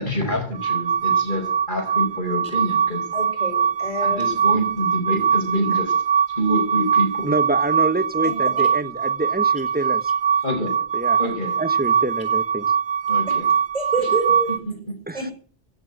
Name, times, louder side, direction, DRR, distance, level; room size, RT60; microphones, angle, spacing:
voice 1, 0.0-3.1 4.0-5.9 6.3-7.3 10.4-10.7 11.2-11.6 13.1-13.5, equal, 50° left, 2 dB, 5.0 m, -26 dB
sound 1, 0.5-14.6, right 7 dB, 70° right, 2.3 m, -22 dB
voice 2, 3.1-4.3 13.7-14.5 15.1-15.3, right 3 dB, 40° right, 4 dB, 6.3 m, -27 dB
voice 3, 7.2-10.1 10.9-11.3 11.6-12.7 15.1-15.3, right 2 dB, 10° right, 11 dB, 1.1 m, -26 dB
16.0 x 8.0 x 9.9 m, 0.41 s
omnidirectional pair, 1.1 m